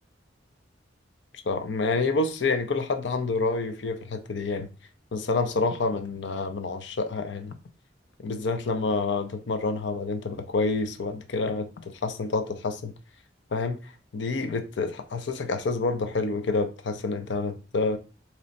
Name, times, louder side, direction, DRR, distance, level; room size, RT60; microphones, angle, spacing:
voice 1, 1.3-4.7 5.1-7.5 8.2-12.9 13.5-18.0, left 3 dB, 75° left, 0.5 m, -28 dB
4.1 x 3.0 x 2.5 m
head